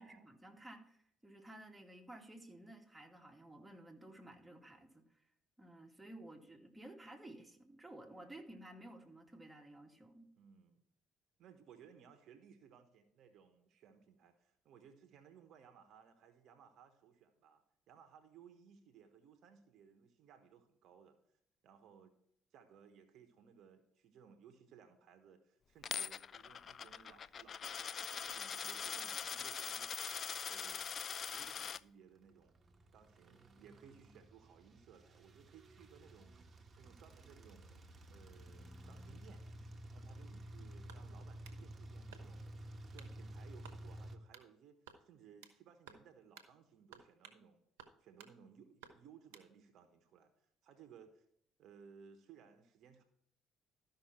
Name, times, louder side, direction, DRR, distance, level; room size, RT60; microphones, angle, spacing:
voice 1, 0.0-5.2 5.6-10.3, right 1 dB, 10° right, 0 dB, 2.4 m, -54 dB
voice 2, 10.4-10.8 11.4-22.1 22.5-27.9 28.2-30.2 30.4-30.9 31.3-32.6 32.9-36.4 36.8-39.5 39.9-42.5 42.8-47.6 48.0-51.2 51.6-53.0, right 7 dB, 65° right, 7 dB, 1.1 m, -61 dB
Coin (dropping), 25.8-31.8, left 7 dB, 50° left, 0.3 m, -42 dB
sound 1, 32.2-44.2, right 1 dB, 35° right, 1.4 m, -52 dB
sound 2, 40.9-41.6 42.1-42.5 43.0-43.2 43.6-43.8 44.3-44.5 44.9-45.6 45.9-46.1 46.4-46.5 46.9-47.4 47.8-48.4 48.8-49.5, right 7 dB, 85° right, 1.1 m, -57 dB
13.0 x 5.7 x 4.4 m, 0.70 s
hypercardioid pair, 60°, 0 cm